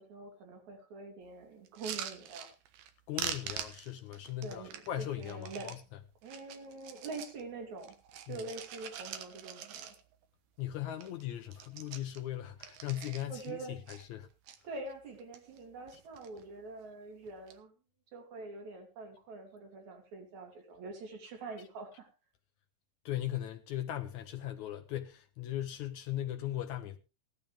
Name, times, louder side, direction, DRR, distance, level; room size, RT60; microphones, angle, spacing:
voice 1, 0.0-2.5 4.4-5.7 6.2-8.0 8.3-9.9 13.3-13.8 14.6-17.7 18.1-22.1, right 3 dB, 60° right, 4.0 m, -45 dB
sound 1, 1.7-2.9 3.2-5.8 6.2-7.4 7.8-10.2 10.6-10.7 10.9-11.2 11.5-13.5 13.9-14.6 15.1-15.6 15.9-16.4 17.3-17.6, right 9 dB, 85° right, 2.9 m, -44 dB
voice 2, 3.1-5.8 8.3-8.4 10.6-14.3 23.1-27.0, left 12 dB, 70° left, 2.1 m, -38 dB
16.5 x 12.5 x 3.4 m
omnidirectional pair, 3.8 m